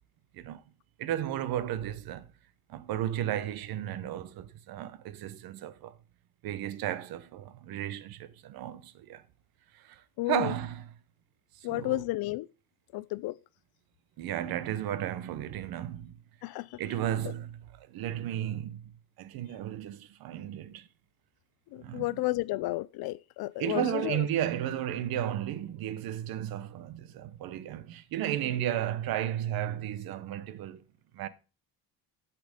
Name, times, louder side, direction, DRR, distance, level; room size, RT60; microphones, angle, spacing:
voice 1, 1.0-2.3 2.7-6.0 6.4-9.2 9.7-10.9 11.5-12.0 14.2-16.2 16.8-20.9 21.8-22.2 23.6-30.8 31.1-31.3, right 11 dB, 65° right, 1.0 m, -34 dB
voice 2, 10.2-10.5 11.6-12.5 12.9-13.4 16.4-16.8 21.7-24.2, left 18 dB, 70° left, 0.6 m, -32 dB
12.0 x 6.0 x 5.1 m
cardioid pair, 160°, 38 cm